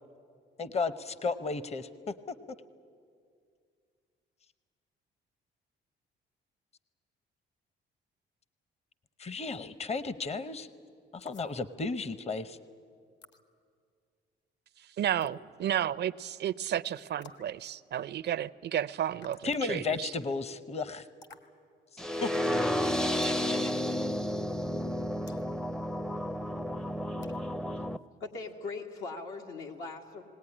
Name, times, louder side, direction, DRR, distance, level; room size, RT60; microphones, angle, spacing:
voice 1, 0.6-2.1 9.2-10.7 11.1-12.6 19.4-21.1 22.2-22.9, left 4 dB, 30° left, 15 dB, 0.8 m, -34 dB
sound 1, 11.2-11.5 13.2-13.4 15.2-15.4 17.2-17.5 19.2-19.5 21.2-21.5 23.2-23.4 25.3-25.5 27.2-27.5, left 4 dB, 65° left, 1.5 m, -50 dB
voice 2, 15.0-20.1, right 10 dB, 60° right, 16 dB, 0.5 m, -32 dB
sound 2, 22.0-28.0, left 1 dB, 5° left, 0.5 m, -31 dB
voice 3, 28.2-30.2, left 3 dB, 85° left, 1 dB, 2.2 m, -40 dB
19.5 x 18.0 x 9.9 m, 2.2 s
cardioid pair, 90°, 20 cm